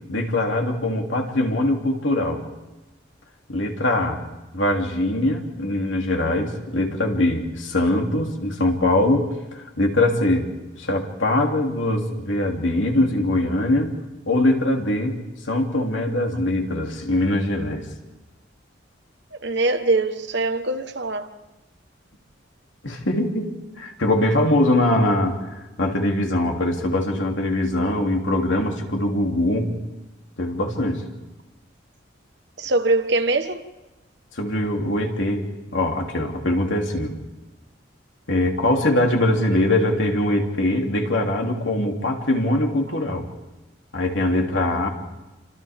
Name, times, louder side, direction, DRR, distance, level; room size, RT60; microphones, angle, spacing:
voice 1, 0.1-2.4 3.5-4.2 4.5-10.5 10.8-13.9 14.3-15.2 15.5-17.9 22.8-23.5 23.8-29.7 30.4-31.0 34.3-35.4 35.7-37.1 38.3-43.3 43.9-44.9, left 1 dB, 75° left, 3.1 m, -22 dB
voice 2, 19.3-21.3 32.6-33.6, right 2 dB, 60° right, 1.4 m, -22 dB
29.0 x 26.0 x 3.7 m
head